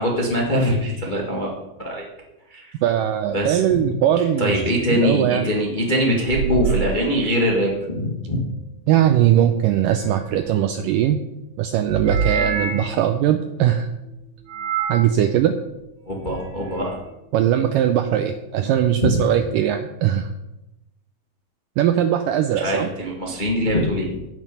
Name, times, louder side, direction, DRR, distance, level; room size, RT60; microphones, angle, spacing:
voice 1, 0.0-1.5 1.8-2.0 2.5-2.7 3.3-3.9 4.4-8.4 16.1-17.0 18.6-18.7 19.0-19.2 22.5-24.2, equal, 80° left, -2 dB, 0.4 m, -22 dB
voice 2, 2.8-4.6 4.9-5.5 8.9-11.2 11.6-13.9 14.9-15.6 17.3-20.3 21.8-22.9, right 10 dB, 90° right, 8 dB, 1.9 m, -20 dB
sound 1, 4.5-4.7 6.1-7.8 9.7-10.8 11.9-13.0 14.5-15.1 16.1-17.0, right 6 dB, 60° right, 2.9 m, -27 dB
17.0 x 6.4 x 5.4 m, 0.96 s
omnidirectional pair, 4.5 m